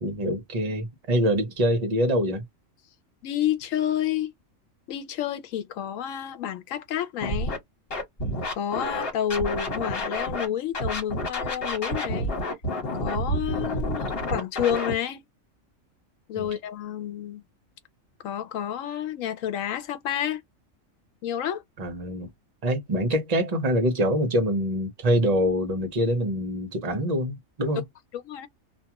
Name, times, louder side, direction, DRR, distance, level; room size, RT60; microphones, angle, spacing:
voice 1, 0.0-2.4 16.4-16.5 21.8-22.3 22.6-27.8, equal, 35° right, 0.7 m, -25 dB
voice 2, 3.2-4.3 4.9-7.6 8.6-12.3 13.0-15.2 16.3-17.4 18.2-20.4 21.2-21.6 28.1-28.5, left 10 dB, 80° left, 1.0 m, -29 dB
Scratching (performance technique), 7.2-7.6 7.9-10.5 10.7-14.9, left 1 dB, 50° left, 1.4 m, -29 dB
2.4 x 2.3 x 2.9 m
omnidirectional pair, 1.4 m